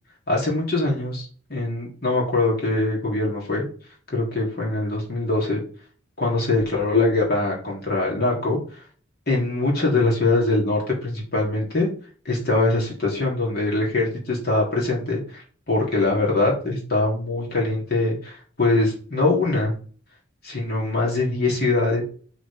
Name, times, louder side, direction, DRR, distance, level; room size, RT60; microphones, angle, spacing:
voice 1, 0.3-3.6 4.1-5.6 6.2-8.8 9.3-11.9 12.2-19.7 20.4-22.0, left 2 dB, 45° left, -3 dB, 3.3 m, -23 dB
9.1 x 5.1 x 3.6 m, 0.43 s
head